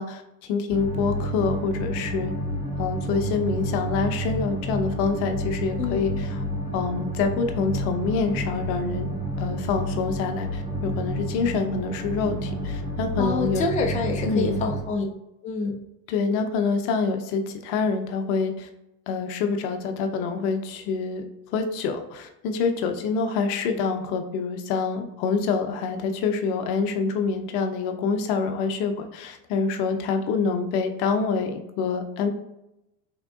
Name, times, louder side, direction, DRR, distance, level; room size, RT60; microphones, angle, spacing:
voice 1, 0.0-2.3 2.8-6.4 6.7-13.7 14.2-14.6 16.1-18.7 19.1-21.2 21.5-32.3, left 4 dB, 70° left, 6 dB, 0.6 m, -26 dB
sound 1, 0.7-14.8, right 1 dB, 10° right, 1.1 m, -30 dB
voice 2, 5.8-6.2 13.2-15.1 15.4-15.8, left 4 dB, 20° left, 2 dB, 0.4 m, -27 dB
3.5 x 3.4 x 2.3 m, 0.90 s
supercardioid pair, 90°, 42 cm